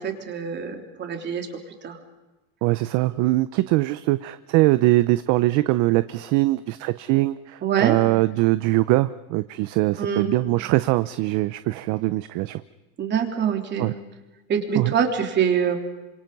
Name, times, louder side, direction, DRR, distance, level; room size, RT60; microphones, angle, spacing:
voice 1, 0.0-1.5 1.8-2.0 3.1-3.2 7.6-8.0 10.0-10.3 13.0-13.9 14.5-15.8, right 7 dB, 30° right, 4 dB, 3.4 m, -24 dB
voice 2, 2.6-12.6 13.8-13.9 14.8-14.9, right 18 dB, 50° right, 14 dB, 0.7 m, -22 dB
28.0 x 26.5 x 5.5 m, 1.1 s
cardioid pair, 155°, 36 cm